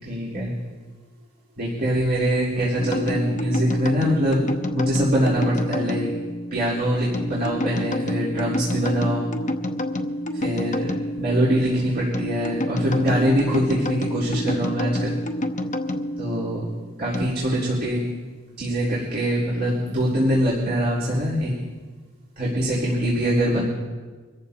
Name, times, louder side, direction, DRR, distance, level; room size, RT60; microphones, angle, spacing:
voice 1, 0.0-0.5 1.6-6.1 6.5-9.3 10.3-15.2 16.2-16.7 17.0-18.1 18.6-21.6 22.4-23.6, equal, 55° right, -9 dB, 4.0 m, -23 dB
sound 1, 2.8-17.2, left 1 dB, 40° left, 1.0 m, -29 dB
26.0 x 14.5 x 2.9 m, 1.4 s
head